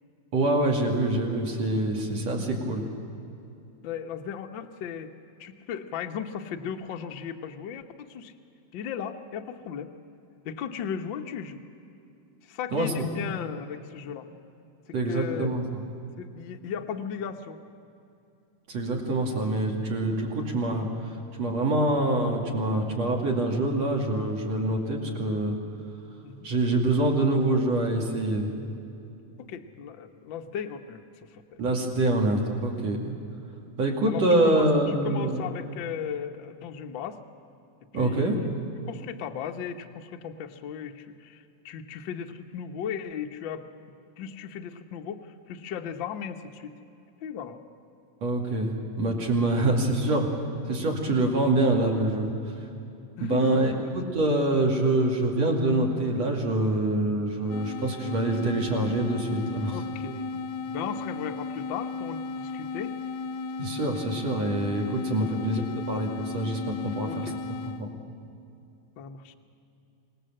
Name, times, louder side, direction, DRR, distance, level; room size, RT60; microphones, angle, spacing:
voice 1, 0.3-2.8 12.7-12.9 14.9-15.6 18.7-20.9 21.4-25.6 26.4-28.5 31.6-33.1 33.8-35.4 37.9-38.4 48.2-50.3 50.7-52.3 53.2-59.8 63.6-65.6 65.9-67.9, right 2 dB, 65° right, 1 dB, 3.7 m, -25 dB
voice 2, 3.8-5.1 5.4-8.4 8.7-9.9 10.4-11.6 12.4-14.3 14.9-15.5 16.2-17.6 24.6-24.7 26.2-26.5 29.4-31.6 33.8-37.2 37.9-38.5 38.9-43.7 44.2-46.7 47.2-47.6 53.2-54.1 57.4-57.7 59.7-60.3 60.7-63.0 65.2-65.5 67.0-67.3 69.0-69.3, left 7 dB, 60° left, 5 dB, 1.3 m, -36 dB
sound 1, 57.5-67.9, left 4 dB, 75° left, 2.1 m, -35 dB
26.0 x 19.0 x 7.7 m, 2.7 s
omnidirectional pair, 3.3 m